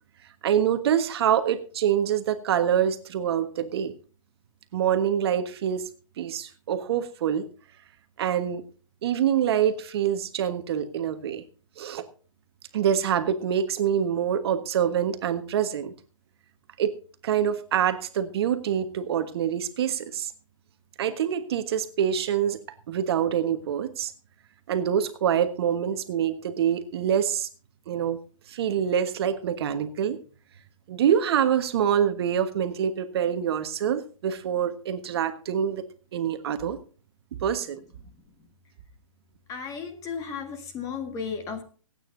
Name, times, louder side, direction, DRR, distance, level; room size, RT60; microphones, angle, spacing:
voice 1, 0.4-3.9 4.7-5.9 6.2-7.4 8.2-8.6 9.0-11.4 11.8-12.0 12.7-15.9 16.8-16.9 17.2-20.3 21.0-22.6 22.9-24.1 24.7-27.5 27.9-28.2 28.5-30.2 30.9-35.8 36.1-36.8 37.4-37.8, right 9 dB, 50° right, 9 dB, 1.4 m, -25 dB
voice 2, 39.5-41.6, left 6 dB, 20° left, 6 dB, 1.8 m, -34 dB
24.5 x 9.1 x 2.7 m, 0.39 s
hypercardioid pair, 150°, 17 cm